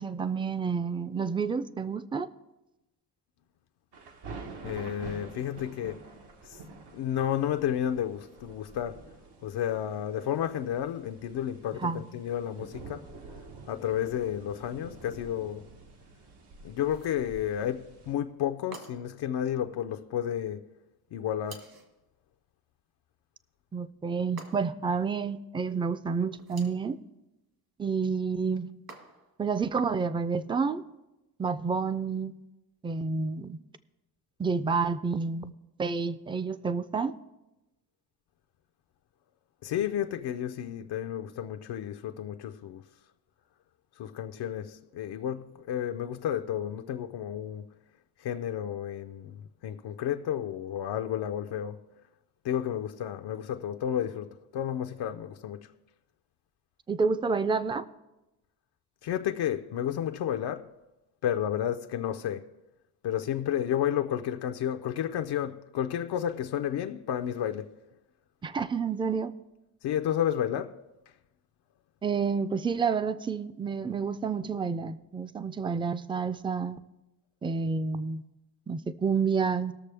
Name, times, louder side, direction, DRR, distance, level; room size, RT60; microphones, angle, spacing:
voice 1, 0.0-2.3 11.8-12.0 23.7-27.0 27.8-28.7 29.4-30.8 31.4-32.3 32.8-33.6 34.4-35.5 35.8-37.1 56.9-57.8 68.4-69.3 72.0-76.8 77.4-78.2 78.7-79.7, right 5 dB, 15° right, 0.3 m, -29 dB
sound 1, 3.9-18.1, right 3 dB, 85° right, 1.3 m, -48 dB
voice 2, 4.6-6.1 6.4-6.6 6.9-9.1 9.4-13.2 13.7-15.7 16.6-20.7 21.1-21.8 39.6-42.8 44.0-47.7 48.2-51.9 52.4-55.7 59.0-60.8 61.2-62.5 63.0-67.8 69.8-70.8, left 10 dB, 85° left, 0.6 m, -32 dB
sound 2, 16.8-17.3 18.7-19.2 21.4-22.0 24.4-24.9 26.3-26.9 28.9-29.4, right 4 dB, 65° right, 1.9 m, -49 dB
20.0 x 6.7 x 3.3 m
wide cardioid pair, 135°, 39 cm